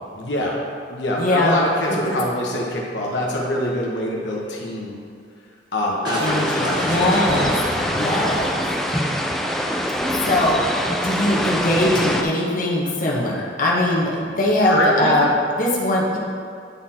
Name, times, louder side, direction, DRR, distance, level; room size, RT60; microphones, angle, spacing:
voice 1, 0.1-0.5 0.9-5.0 5.7-7.5 9.0-9.4 10.0-10.3 14.6-15.2, left 1 dB, 85° left, -3 dB, 1.1 m, -25 dB
voice 2, 1.2-1.6 2.0-2.1 6.2-7.5 7.9-8.6 10.2-10.6 11.0-15.3 15.6-16.2, left 1 dB, 50° left, -4 dB, 1.2 m, -21 dB
Crushing, 6.0-9.4, right 1 dB, 25° right, 1.1 m, -30 dB
sound 1, 6.2-12.2, equal, ahead, 0.4 m, -24 dB
9.6 x 4.2 x 4.3 m, 2.3 s
head